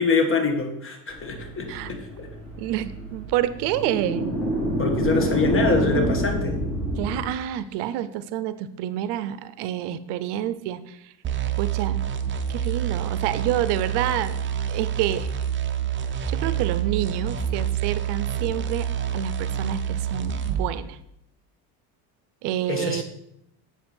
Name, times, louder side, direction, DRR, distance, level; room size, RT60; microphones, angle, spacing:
voice 1, 0.0-2.3 4.8-6.6 22.7-23.0, left 4 dB, 30° left, 4 dB, 1.7 m, -25 dB
sound 1, 1.1-7.2, right 1 dB, 5° left, 3.5 m, -27 dB
voice 2, 2.6-4.3 7.0-11.0 11.6-12.0 12.5-14.4 14.7-15.3 16.3-18.9 19.1-21.0 22.4-23.0, right 12 dB, 70° right, 14 dB, 0.7 m, -28 dB
sound 2, 11.2-20.7, right 8 dB, 25° right, 0.7 m, -27 dB
7.9 x 7.1 x 4.4 m, 0.80 s
supercardioid pair, 110°, 43 cm